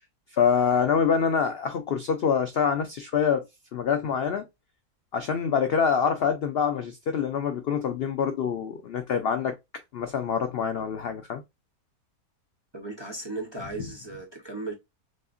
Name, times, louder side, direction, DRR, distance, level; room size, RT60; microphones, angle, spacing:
voice 1, 0.3-3.4 3.7-4.4 5.1-9.5 9.9-11.4, left 6 dB, 80° left, 0.5 m, -25 dB
voice 2, 12.7-14.7, right 2 dB, 25° right, 0.7 m, -36 dB
6.3 x 2.4 x 2.5 m
omnidirectional pair, 1.7 m